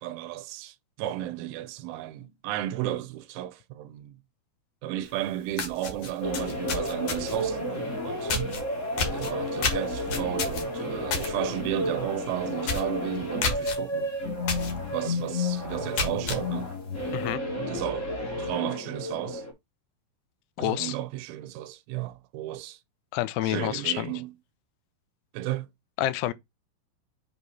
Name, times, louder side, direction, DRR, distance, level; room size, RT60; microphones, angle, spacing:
voice 1, 0.0-4.2 4.8-8.6 9.0-14.2 14.9-16.8 17.6-18.1 18.4-19.4 20.6-22.8 23.4-24.3 25.3-25.7, right 13 dB, 85° right, 3.1 m, -33 dB
sound 1, 5.1-5.2 5.5-7.5 8.3-8.6 9.0-11.3 11.7-11.9 12.2-12.3 12.6-12.9 13.4-13.8 14.5-14.7 15.2-15.3 15.8-16.4, left 4 dB, 60° left, 1.7 m, -29 dB
sound 2, 6.2-19.5, left 2 dB, 40° left, 1.0 m, -32 dB
voice 2, 20.6-21.0 23.1-24.1 26.0-26.3, left 14 dB, 85° left, 2.9 m, -28 dB
8.2 x 3.0 x 3.9 m
omnidirectional pair, 5.5 m